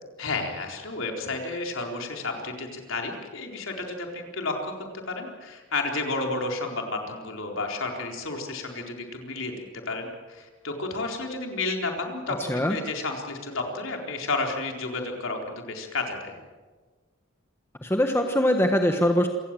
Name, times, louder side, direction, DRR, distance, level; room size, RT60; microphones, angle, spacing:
voice 1, 0.2-16.4, left 3 dB, 70° left, 2 dB, 4.2 m, -32 dB
voice 2, 17.8-19.3, equal, 10° left, 4 dB, 1.3 m, -22 dB
27.0 x 18.0 x 7.7 m, 1.4 s
head